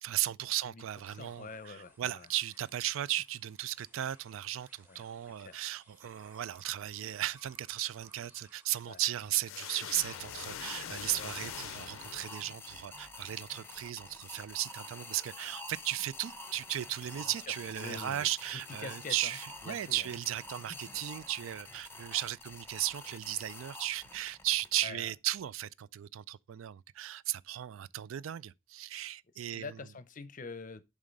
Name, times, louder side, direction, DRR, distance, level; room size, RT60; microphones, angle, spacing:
voice 1, 0.0-29.8, right 13 dB, 80° right, 0.3 m, -36 dB
sound 1, 0.9-10.5, equal, 10° right, 1.4 m, -64 dB
voice 2, 1.1-2.3 4.9-5.0 5.4-5.6 8.9-9.0 11.2-11.3 17.7-18.3 18.8-19.4 19.6-20.1 24.8-25.1 29.5-30.8, left 4 dB, 40° left, 0.6 m, -45 dB
sound 2, 9.4-12.8, left 10 dB, 85° left, 0.4 m, -43 dB
sound 3, 10.1-24.8, left 2 dB, 10° left, 0.9 m, -48 dB
7.2 x 3.7 x 5.2 m
head